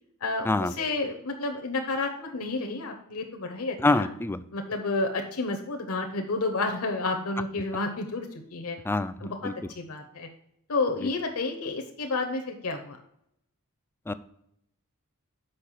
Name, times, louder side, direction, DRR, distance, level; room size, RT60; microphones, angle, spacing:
voice 1, 0.2-4.1 4.5-8.8 9.2-10.3 10.7-13.0, left 3 dB, 70° left, 4 dB, 0.9 m, -30 dB
voice 2, 3.8-4.4 8.9-9.5 14.1-14.2, left 2 dB, 10° left, 12 dB, 0.3 m, -25 dB
6.6 x 5.4 x 5.7 m, 0.76 s
head